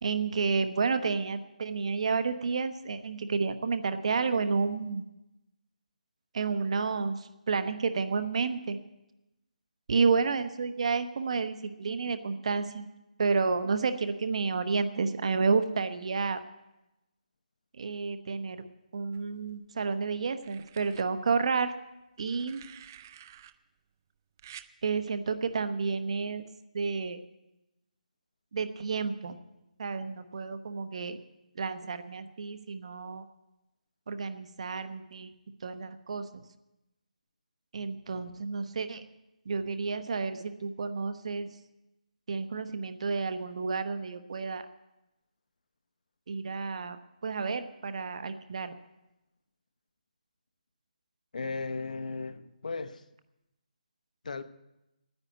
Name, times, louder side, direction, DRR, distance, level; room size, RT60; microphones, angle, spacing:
voice 1, 0.0-5.1 6.3-8.8 9.9-12.9 13.2-16.4 17.7-18.6 18.9-21.7 22.2-22.6 24.8-26.5 26.7-27.2 28.5-29.4 29.8-31.2 31.5-33.3 34.1-35.3 35.6-36.4 37.7-39.0 39.4-41.6 42.3-44.7 46.3-48.7, right 4 dB, 50° right, 9 dB, 0.9 m, -30 dB
sound 1, 19.1-19.8 20.4-21.0 22.2-23.5 24.4-24.7 26.1-26.3, right 10 dB, 25° right, 0.4 m, -51 dB
voice 2, 51.3-53.0 54.2-54.4, left 4 dB, 65° left, 12 dB, 0.8 m, -36 dB
9.8 x 9.8 x 9.0 m, 0.95 s
hypercardioid pair, 170°, 4 cm